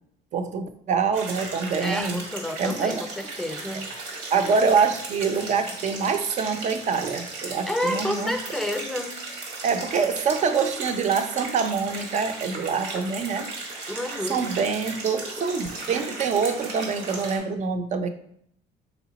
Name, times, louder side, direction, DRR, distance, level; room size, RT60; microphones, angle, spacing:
voice 1, 0.3-2.2 2.6-3.0 4.3-8.4 9.6-13.5 14.3-18.1, right 5 dB, 45° right, 8 dB, 0.5 m, -25 dB
sound 1, 1.1-17.4, right 3 dB, 90° right, 1.3 m, -36 dB
voice 2, 1.8-3.9 7.7-9.1 13.9-14.4, left 1 dB, ahead, 5 dB, 0.5 m, -30 dB
3.3 x 3.0 x 4.0 m, 0.68 s
cardioid pair, 110°, 17 cm